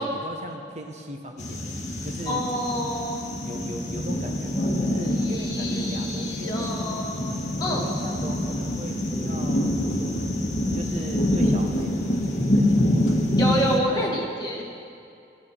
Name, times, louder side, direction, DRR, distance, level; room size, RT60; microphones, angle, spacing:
voice 1, 0.0-2.5 3.4-7.1 7.7-10.3 10.7-13.1 13.9-14.3, right 1 dB, 40° right, 3 dB, 1.1 m, -38 dB
sound 1, 1.4-13.8, left 1 dB, 40° left, 1.6 m, -26 dB
voice 2, 2.3-3.2 5.0-7.2 7.6-7.9 13.4-14.6, equal, 20° left, -3 dB, 2.0 m, -28 dB
15.5 x 11.5 x 6.5 m, 2.4 s
head